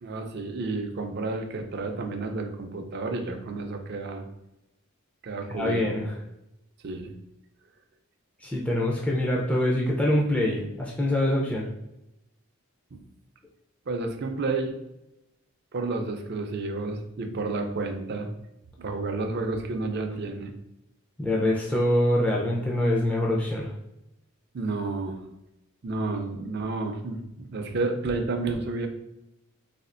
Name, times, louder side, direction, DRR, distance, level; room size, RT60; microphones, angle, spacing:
voice 1, 0.0-4.2 5.2-5.9 6.8-7.1 12.9-13.0 13.9-14.8 15.7-18.3 18.8-20.5 24.5-25.2 25.8-28.9, right 3 dB, 50° right, 5 dB, 0.5 m, -31 dB
voice 2, 5.5-6.1 8.4-11.7 21.2-23.7, left 1 dB, 5° left, -3 dB, 0.4 m, -24 dB
4.2 x 2.4 x 2.5 m, 0.89 s
head